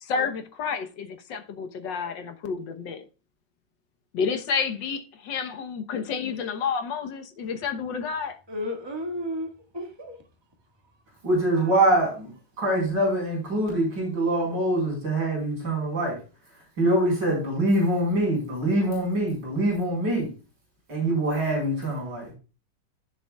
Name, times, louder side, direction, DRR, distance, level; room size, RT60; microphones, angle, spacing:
voice 1, 0.0-3.0 4.1-8.4, left 6 dB, 80° left, 1.8 m, -30 dB
voice 2, 8.5-10.1 11.5-11.8, left 1 dB, 15° right, 2.0 m, -33 dB
voice 3, 11.2-12.3 12.6-16.2 16.8-20.3 20.9-22.3, right 1 dB, 90° right, 5.5 m, -24 dB
16.0 x 7.2 x 2.4 m
omnidirectional pair, 1.9 m